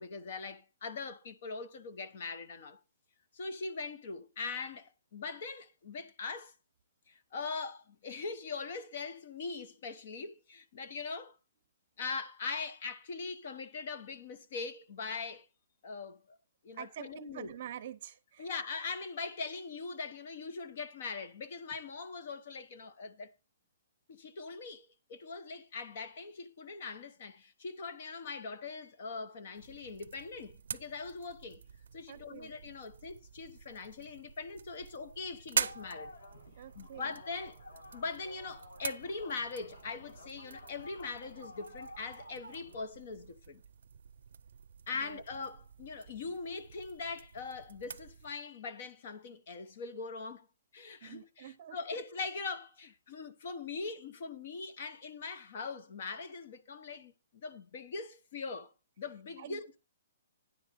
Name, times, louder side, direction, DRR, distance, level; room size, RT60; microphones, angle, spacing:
voice 1, 0.0-2.8 3.3-6.5 7.1-11.4 12.0-15.5 15.8-16.4 16.6-17.5 18.4-23.3 24.1-31.6 31.9-36.1 36.7-37.6 37.9-43.6 44.9-50.5 50.7-59.8, left 4 dB, 40° left, 0.9 m, -41 dB
voice 2, 16.8-18.5 32.1-32.5 36.6-37.1 45.0-45.2 51.0-51.8 59.4-59.6, right 11 dB, 35° right, 0.7 m, -46 dB
sound 1, 29.6-48.3, right 6 dB, 80° right, 0.5 m, -45 dB
sound 2, 35.5-42.8, left 1 dB, 85° left, 7.2 m, -52 dB
9.9 x 4.0 x 7.4 m
hypercardioid pair, 180°, 0 cm